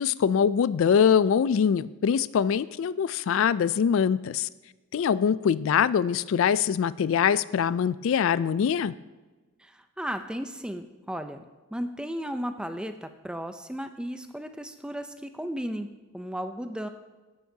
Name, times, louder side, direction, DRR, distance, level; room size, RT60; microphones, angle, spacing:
voice 1, 0.0-4.5 4.9-8.9, left 7 dB, 60° left, 18 dB, 0.3 m, -23 dB
voice 2, 9.6-11.5 11.7-16.9, equal, 5° right, 8 dB, 0.5 m, -35 dB
14.0 x 10.5 x 2.8 m, 1.2 s
head